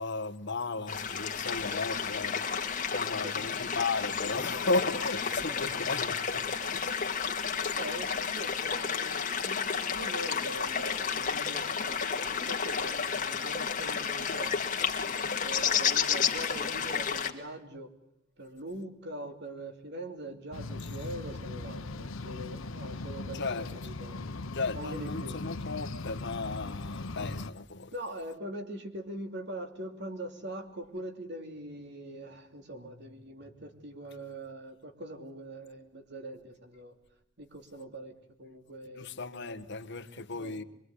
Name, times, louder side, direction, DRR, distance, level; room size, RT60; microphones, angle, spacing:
voice 1, 0.0-7.1 7.6-7.7 15.6-15.7 23.3-23.7 24.5-27.9 39.0-40.6, left 3 dB, 60° left, 1.4 m, -35 dB
sound 1, 0.9-17.3, left 6 dB, 40° left, 2.2 m, -31 dB
voice 2, 7.8-12.0 12.3-14.5 15.0-17.9 18.4-24.3 24.7-25.4 27.9-36.9 37.4-38.1 38.4-39.1 40.2-40.6, right 1 dB, 60° right, 3.1 m, -42 dB
sound 2, 20.5-27.5, left 2 dB, 90° left, 1.0 m, -39 dB
24.0 x 23.5 x 9.8 m
head